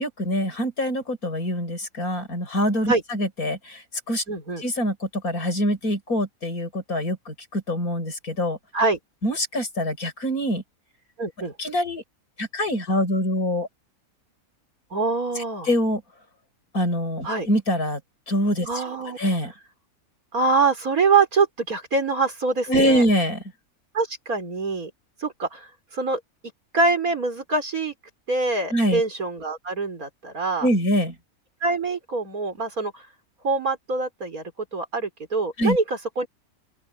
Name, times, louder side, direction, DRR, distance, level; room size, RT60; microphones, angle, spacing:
voice 1, 0.0-4.2 4.6-8.6 9.2-10.6 11.6-12.0 12.4-13.7 15.4-16.0 16.7-18.0 18.3-19.5 22.7-23.4 28.7-29.0 30.6-31.1 35.6-35.8, equal, 75° left, 6.7 m, -24 dB
voice 2, 4.3-4.6 8.7-9.0 11.2-11.5 14.9-15.7 17.2-17.5 18.7-19.2 20.3-23.0 23.9-24.9 25.2-26.2 26.7-27.9 28.3-30.7 31.6-33.1 33.4-34.4 34.7-36.3, right 3 dB, 75° right, 4.8 m, -24 dB
open air
omnidirectional pair, 1.5 m